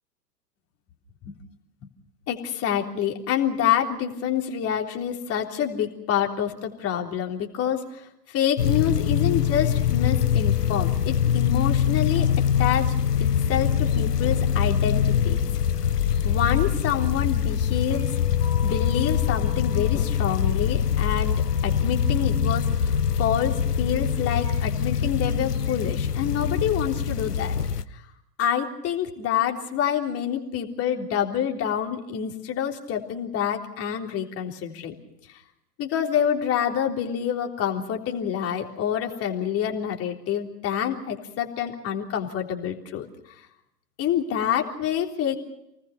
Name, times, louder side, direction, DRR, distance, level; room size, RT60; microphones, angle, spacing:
voice 1, 2.3-12.3 12.6-12.9 13.2-15.4 16.2-18.2 18.6-27.5 27.9-28.0 28.4-34.9 35.8-43.1 44.0-45.4, left 9 dB, 30° left, 2 dB, 3.6 m, -27 dB
sound 1, 8.6-27.8, left 8 dB, 70° left, 1.2 m, -23 dB
29.5 x 19.5 x 5.8 m, 0.83 s
figure-of-eight pair, 100°, 50 cm